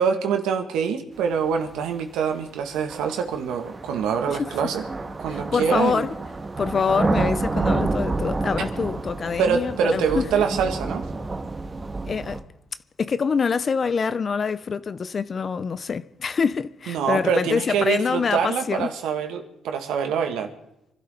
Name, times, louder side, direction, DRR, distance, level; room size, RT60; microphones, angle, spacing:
voice 1, 0.0-4.8 5.2-6.1 8.6-8.7 9.4-11.0 16.9-20.5, right 6 dB, 90° right, 2.1 m, -25 dB
sound 1, 1.8-1.9 2.9-12.4, right 3 dB, 30° right, 1.9 m, -29 dB
voice 2, 5.3-6.2 6.6-10.4 12.0-12.4 13.0-18.9, left 5 dB, 40° left, 0.6 m, -25 dB
27.0 x 12.5 x 4.0 m
cardioid pair, 90°, 0 cm